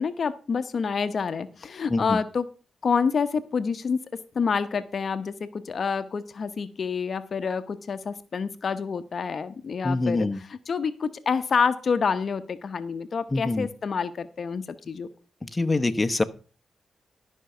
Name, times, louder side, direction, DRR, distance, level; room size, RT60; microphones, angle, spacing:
voice 1, 0.0-2.4 2.8-4.0 4.3-10.3 10.7-15.1, left 5 dB, 60° left, 10 dB, 0.9 m, -27 dB
voice 2, 9.8-10.4 13.3-13.7 15.4-16.2, left 2 dB, 25° left, 8 dB, 1.1 m, -25 dB
12.5 x 5.5 x 6.7 m, 0.37 s
supercardioid pair, 50°, 0 cm